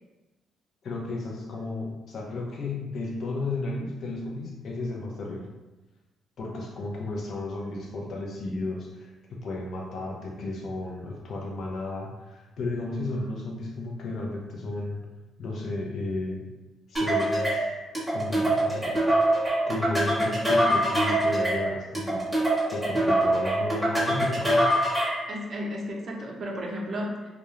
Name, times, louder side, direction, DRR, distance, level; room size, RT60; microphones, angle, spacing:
voice 1, 0.8-5.5 6.4-15.0 15.4-16.5 16.9-17.7 18.1-19.2 19.7-22.2 22.7-24.8, left 2 dB, 60° left, -1 dB, 0.6 m, -33 dB
sound 1, 17.0-25.3, right 1 dB, ahead, 1.1 m, -24 dB
voice 2, 25.3-27.3, equal, 45° right, -1 dB, 0.6 m, -33 dB
2.4 x 2.2 x 3.0 m, 1.1 s
cardioid pair, 90°, 0 cm